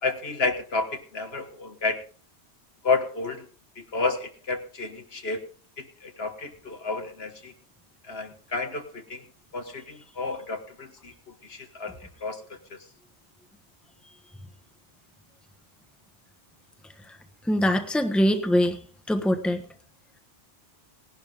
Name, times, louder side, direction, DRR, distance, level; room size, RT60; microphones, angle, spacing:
voice 1, 0.0-2.0 2.8-3.5 3.7-5.5 5.8-7.5 8.0-9.2 9.5-12.4 12.7-12.8, left 3 dB, 65° left, 6 dB, 1.8 m, -31 dB
voice 2, 17.5-18.8 19.1-19.6, equal, ahead, 6 dB, 1.3 m, -23 dB
18.5 x 11.5 x 3.7 m, 0.39 s
omnidirectional pair, 1.1 m